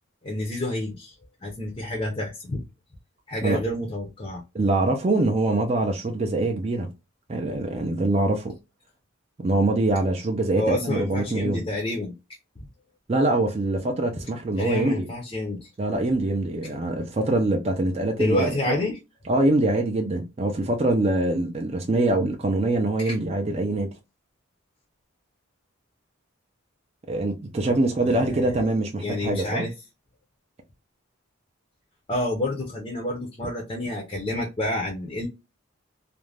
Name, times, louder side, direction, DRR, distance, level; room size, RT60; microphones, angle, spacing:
voice 1, 0.2-1.2 1.4-2.6 3.3-4.4 10.5-12.1 14.6-15.7 18.2-19.0 23.0-23.2 27.7-27.8 28.0-28.6 29.0-29.7 32.1-35.3, left 1 dB, 25° left, 0.5 m, -28 dB
voice 2, 4.5-6.9 7.3-8.5 9.4-11.6 13.1-15.1 15.8-18.7 19.2-23.9 27.1-29.6, right 2 dB, 30° right, 0.4 m, -24 dB
2.4 x 2.1 x 3.2 m
head